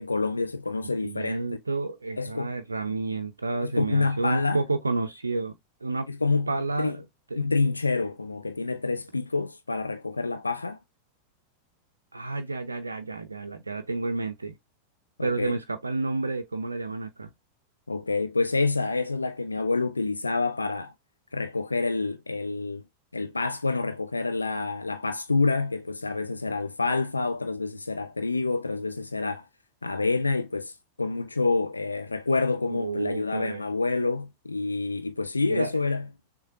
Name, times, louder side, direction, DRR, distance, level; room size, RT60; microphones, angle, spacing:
voice 1, 0.0-1.6 2.2-2.5 3.6-4.6 6.1-6.5 6.8-7.0 7.4-10.8 15.2-15.6 17.9-20.9 21.3-22.8 23.1-29.4 29.8-30.7 31.0-36.1, left 3 dB, 80° left, 0.4 m, -27 dB
voice 2, 1.0-5.6 5.8-6.1 6.5-7.0 7.3-7.4 12.1-14.6 15.2-17.3 32.7-33.6 35.5-35.7, right 3 dB, 80° right, 0.5 m, -30 dB
6.3 x 2.3 x 2.7 m
figure-of-eight pair, 90°, 0 cm